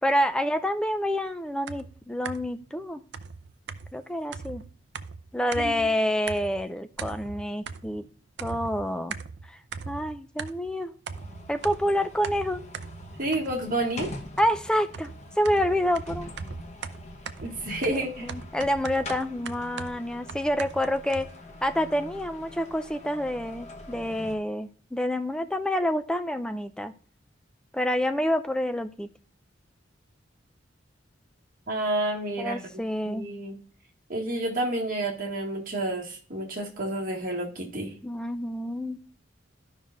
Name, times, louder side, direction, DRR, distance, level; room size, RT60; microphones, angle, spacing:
voice 1, 0.0-3.0 3.9-4.6 5.3-8.1 8.4-9.2 9.5-9.6 9.9-10.9 11.5-12.6 14.4-15.1 15.4-16.3 17.9-21.3 21.6-26.9 27.7-29.1 32.4-33.3 38.0-39.0, equal, 5° left, 8 dB, 0.4 m, -28 dB
sound 1, 1.7-2.6 3.1-5.9 6.3-6.7 7.0-8.1 8.4-10.7 11.1-13.8 14.4-21.3, right 5 dB, 65° right, 0.5 m, -40 dB
sound 2, 11.1-24.4, left 2 dB, 35° left, 1.0 m, -44 dB
voice 2, 13.2-14.1 17.4-18.3 31.7-33.6 34.1-37.9, right 1 dB, 50° right, -1 dB, 1.8 m, -30 dB
14.0 x 5.5 x 2.5 m, 0.41 s
head